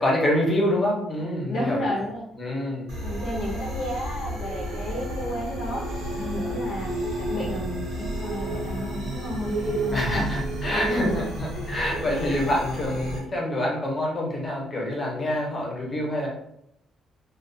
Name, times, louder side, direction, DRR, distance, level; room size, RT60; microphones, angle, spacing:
voice 1, 0.0-1.9 2.4-2.9 9.9-16.3, left 1 dB, 20° left, -2 dB, 0.6 m, -26 dB
voice 2, 1.4-2.2 3.0-5.8 6.1-6.9 7.2-10.2 10.7-11.2 11.5-12.0, left 1 dB, 60° left, -4 dB, 0.5 m, -32 dB
sound 1, 2.9-13.2, right 1 dB, 85° right, 0.9 m, -31 dB
sound 2, 5.2-10.7, right 6 dB, 40° right, 0.5 m, -42 dB
2.2 x 2.2 x 2.6 m, 0.75 s
cardioid pair, 165°, 0 cm